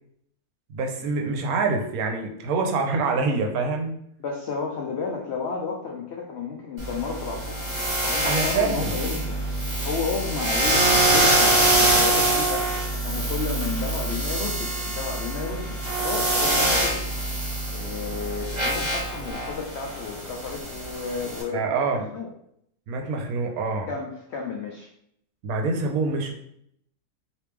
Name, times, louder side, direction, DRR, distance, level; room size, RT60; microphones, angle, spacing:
voice 1, 0.7-3.9 8.2-9.0 21.5-22.1 22.9-23.9 25.4-26.3, right 4 dB, 70° right, 3 dB, 1.0 m, -25 dB
voice 2, 4.2-7.7 8.0-9.4 9.8-17.0 17.7-22.3 23.9-24.9, left 5 dB, 80° left, 1 dB, 0.6 m, -32 dB
sound 1, 6.8-21.4, right 2 dB, 30° right, 1.2 m, -24 dB
3.1 x 2.9 x 3.3 m, 0.72 s
omnidirectional pair, 1.7 m